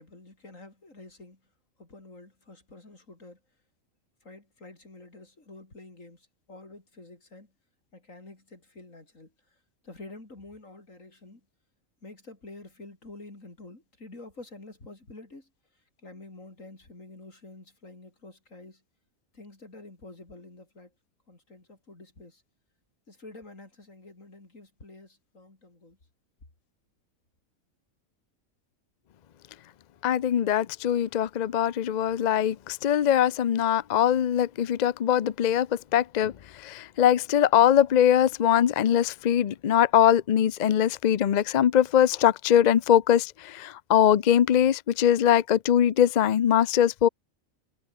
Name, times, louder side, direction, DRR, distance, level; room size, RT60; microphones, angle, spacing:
voice 1, 0.0-1.5 1.8-3.4 4.2-7.5 7.9-9.6 9.8-11.5 12.0-18.8 19.3-20.9 21.3-22.4 23.1-26.0, left 2 dB, 70° left, 5.4 m, -48 dB
voice 2, 30.0-47.1, left 10 dB, 55° left, 0.5 m, -22 dB
omnidirectional pair, 1.4 m